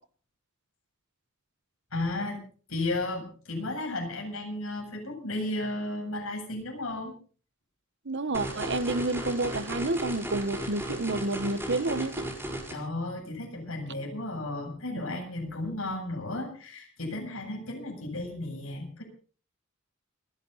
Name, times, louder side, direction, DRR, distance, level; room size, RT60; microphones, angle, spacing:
voice 1, 1.9-2.4 2.7-7.1 12.7-19.0, left 2 dB, 80° left, 7.8 m, -34 dB
voice 2, 8.0-12.3, right 2 dB, 60° right, 1.2 m, -29 dB
sound 1, 8.3-12.7, right 1 dB, 10° right, 5.8 m, -35 dB
30.0 x 10.5 x 4.1 m
head